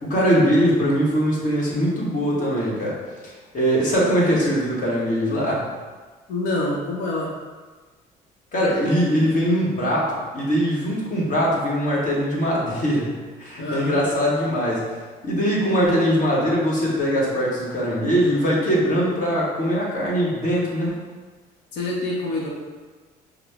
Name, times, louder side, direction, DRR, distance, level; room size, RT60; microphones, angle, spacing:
voice 1, 0.0-2.9 3.2-5.6 8.5-14.8 15.2-20.9, equal, 50° left, -5 dB, 1.4 m, -21 dB
voice 2, 6.3-7.3 13.6-14.0 21.7-22.5, left 2 dB, 75° left, -3 dB, 0.8 m, -26 dB
4.9 x 2.0 x 3.4 m, 1.4 s
supercardioid pair, 75°, 18 cm